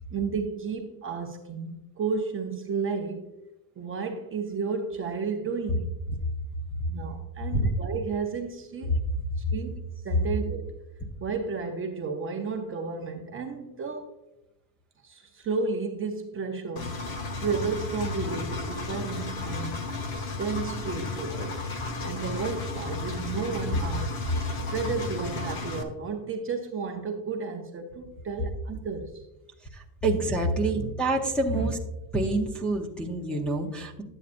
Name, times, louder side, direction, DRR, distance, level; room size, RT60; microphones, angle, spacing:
voice 1, 0.1-3.3 3.8-5.9 6.9-8.9 9.5-10.7 11.2-14.1 15.0-17.1 17.4-19.9 20.4-21.6 22.0-24.1 24.7-29.2 30.7-30.9 31.5-31.7, right 5 dB, 30° right, 0.6 m, -32 dB
Engine, 16.8-25.8, left 3 dB, 55° left, 1.1 m, -33 dB
voice 2, 30.0-31.8 32.1-34.0, right 2 dB, ahead, 0.7 m, -27 dB
11.0 x 8.3 x 2.5 m
cardioid pair, 160°, 43 cm